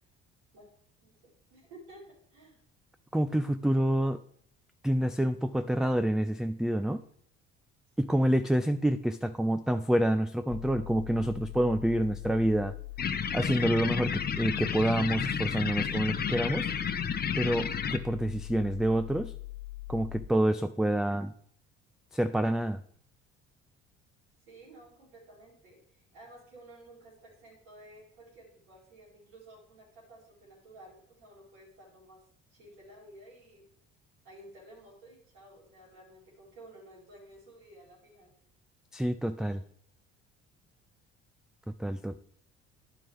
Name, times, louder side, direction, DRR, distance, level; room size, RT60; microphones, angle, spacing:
voice 1, 1.0-2.0 2.3-2.6 8.1-8.8 24.5-32.2 32.5-33.7 34.2-38.3, right 1 dB, 85° right, -5 dB, 4.4 m, -53 dB
voice 2, 3.1-4.2 4.8-7.0 8.0-12.7 13.3-16.7 17.4-19.3 19.9-21.3 22.1-22.8 38.9-39.6 41.8-42.2, right 1 dB, ahead, 10 dB, 0.3 m, -27 dB
sound 1, 10.5-20.2, left 19 dB, 75° left, 1.5 m, -42 dB
sound 2, 13.0-18.0, left 7 dB, 35° left, 0.7 m, -31 dB
10.0 x 7.5 x 3.4 m, 0.64 s
supercardioid pair, 65°, 29 cm